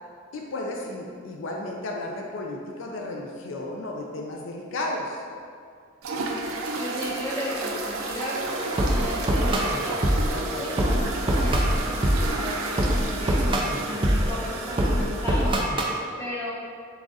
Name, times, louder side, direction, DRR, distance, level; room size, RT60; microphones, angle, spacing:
voice 1, 0.3-5.2 10.3-10.8, left 2 dB, 65° left, 0 dB, 0.4 m, -33 dB
sound 1, 6.0-15.6, right 2 dB, 85° right, 0.5 m, -32 dB
voice 2, 6.7-10.0 10.6-16.5, left 1 dB, 15° left, -8 dB, 0.9 m, -35 dB
sound 2, 8.4-16.0, right 1 dB, 25° right, 0.4 m, -25 dB
7.1 x 2.4 x 2.6 m, 2.2 s
head